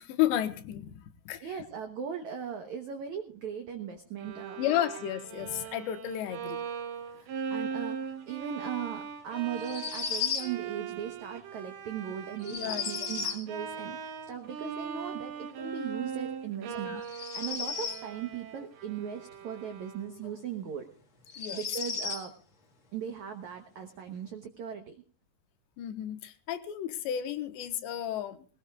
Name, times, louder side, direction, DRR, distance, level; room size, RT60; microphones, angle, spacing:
voice 1, 0.0-1.5 4.6-6.6 12.5-12.9 16.7-17.0 21.4-21.6 25.8-28.5, left 12 dB, 80° left, 10 dB, 3.2 m, -32 dB
voice 2, 1.4-4.6 7.1-20.9 21.5-22.3 22.9-25.0, right 8 dB, 85° right, 6 dB, 1.6 m, -38 dB
Bowed string instrument, 4.2-20.3, right 6 dB, 70° right, 3.0 m, -40 dB
sound 1, 9.6-10.5 12.4-13.4 17.0-18.1 20.2-20.3 21.3-22.3, left 6 dB, 45° left, 1.7 m, -34 dB
20.0 x 19.0 x 2.4 m, 0.38 s
omnidirectional pair, 5.1 m